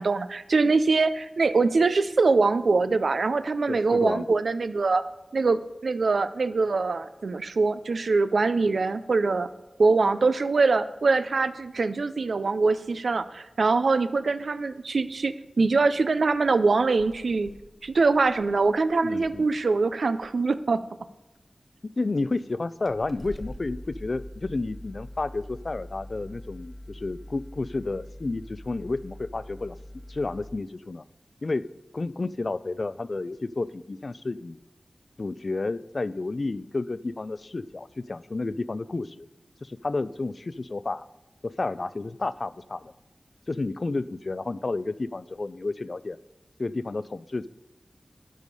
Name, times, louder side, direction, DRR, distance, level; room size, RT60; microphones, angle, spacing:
voice 1, 0.0-5.0 5.3-9.5 9.8-17.5 17.8-20.8, right 3 dB, 85° right, 12 dB, 0.4 m, -23 dB
voice 2, 3.7-4.3 19.0-19.5 22.0-29.8 30.1-31.0 31.4-31.7 31.9-34.6 35.2-39.3 39.6-41.1 41.4-42.9 43.5-46.2 46.6-47.5, left 3 dB, 55° left, 17 dB, 0.3 m, -31 dB
sound 1, 15.7-15.8 16.3-16.5 16.8-19.5 20.0-20.5 21.4-21.5 22.3-22.4 22.8-30.5, left 1 dB, 10° left, 0.7 m, -44 dB
12.0 x 4.8 x 5.3 m, 1.0 s
wide cardioid pair, 70°, 0 cm